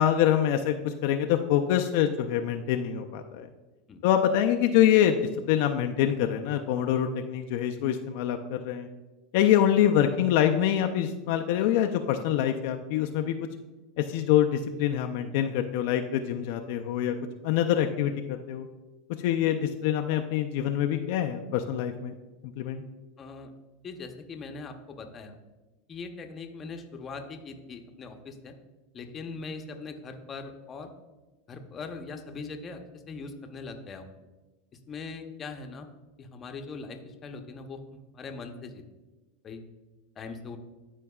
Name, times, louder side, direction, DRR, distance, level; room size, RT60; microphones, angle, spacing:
voice 1, 0.0-3.5 4.0-5.2 5.5-8.9 9.3-13.3 14.0-17.1 17.4-18.7 19.2-22.1 22.6-22.8, left 10 dB, 65° left, 5 dB, 0.4 m, -25 dB
voice 2, 23.2-23.5 23.8-25.4 25.9-28.5 28.9-30.9 31.5-32.8 33.1-34.1 34.9-35.9 36.2-38.8 39.4-39.6 40.2-40.6, left 4 dB, 30° left, 5 dB, 0.8 m, -41 dB
12.0 x 4.6 x 2.3 m, 1.1 s
supercardioid pair, 125°, 0 cm